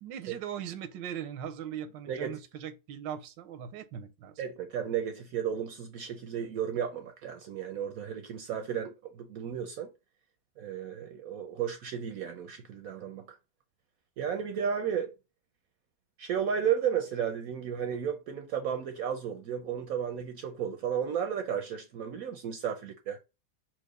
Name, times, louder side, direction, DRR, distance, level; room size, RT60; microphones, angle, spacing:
voice 1, 0.0-4.4, right 9 dB, 90° right, 1.3 m, -39 dB
voice 2, 2.1-2.4 4.4-9.9 10.6-13.4 14.2-15.1 16.2-23.2, right 8 dB, 70° right, 0.9 m, -33 dB
4.5 x 2.4 x 4.7 m
omnidirectional pair, 1.9 m